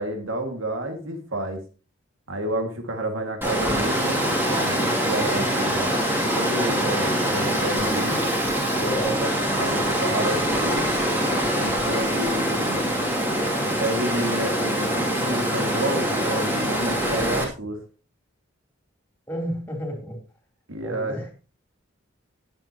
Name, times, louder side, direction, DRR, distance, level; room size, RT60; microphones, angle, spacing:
voice 1, 0.0-1.6 2.3-5.9 6.3-8.2 8.8-9.3 9.6-10.9 11.6-12.8 13.8-17.8 20.7-21.2, right 1 dB, 85° right, 5 dB, 2.1 m, -30 dB
Water, 3.4-17.4, equal, 10° right, 2.5 m, -24 dB
voice 2, 8.8-9.2 19.3-20.2 20.8-21.3, right 1 dB, 10° left, 2 dB, 3.4 m, -30 dB
19.5 x 7.6 x 2.9 m, 0.34 s
head